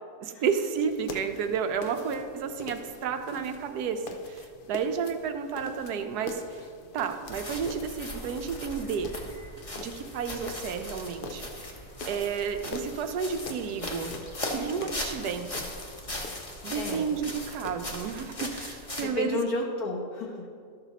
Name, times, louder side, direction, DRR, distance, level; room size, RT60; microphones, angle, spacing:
voice 1, 0.2-6.6 6.9-9.2 9.8-11.7 12.1-15.5 16.6-19.4, right 6 dB, 80° right, 7 dB, 1.2 m, -31 dB
sound 1, 0.7-19.1, left 3 dB, 85° left, 0.4 m, -45 dB
sound 2, 7.3-19.0, left 1 dB, 25° left, 0.9 m, -39 dB
voice 2, 16.7-17.1 19.0-20.5, left 2 dB, 65° left, -1 dB, 1.8 m, -32 dB
12.5 x 6.1 x 4.0 m, 2.3 s
omnidirectional pair, 1.7 m